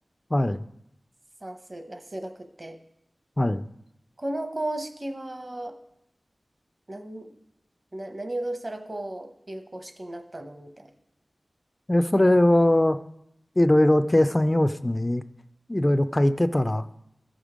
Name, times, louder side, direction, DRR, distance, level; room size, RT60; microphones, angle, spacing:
voice 1, 0.3-0.6 3.4-3.6 11.9-13.0 13.6-15.2 15.7-16.9, left 1 dB, 20° left, 11 dB, 0.3 m, -21 dB
voice 2, 1.4-2.8 4.2-5.8 6.9-7.3 7.9-10.9, right 1 dB, 35° right, 7 dB, 0.8 m, -35 dB
14.0 x 5.1 x 5.0 m, 0.80 s
wide cardioid pair, 85°, 0 cm